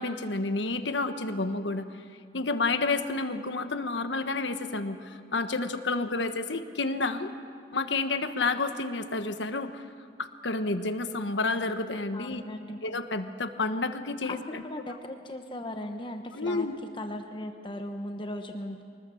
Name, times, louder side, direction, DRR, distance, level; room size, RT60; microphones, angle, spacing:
voice 1, 0.0-1.9 2.3-7.3 7.7-9.8 10.2-12.4 12.8-14.6 16.3-16.7, left 3 dB, 75° left, 8 dB, 1.3 m, -30 dB
voice 2, 12.1-12.8 14.3-16.7 17.0-18.8, left 1 dB, 25° left, 5 dB, 1.0 m, -37 dB
24.0 x 20.0 x 7.0 m, 2.2 s
head